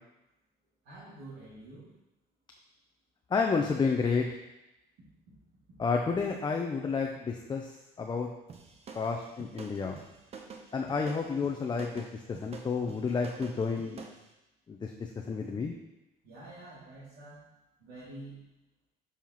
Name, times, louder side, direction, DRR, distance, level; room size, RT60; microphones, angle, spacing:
voice 1, 0.8-1.8 16.2-17.5 17.8-18.4, right 2 dB, 90° right, -12 dB, 2.4 m, -47 dB
voice 2, 3.3-4.3 5.8-7.7 8.0-8.3 8.9-10.0 10.7-12.1 12.4-14.0 14.7-14.9 15.3-15.7, left 5 dB, 25° left, 2 dB, 0.5 m, -30 dB
sound 1, 8.5-14.2, right 5 dB, 35° right, 0.8 m, -47 dB
7.0 x 5.6 x 3.0 m, 0.95 s
cardioid pair, 110°, 17 cm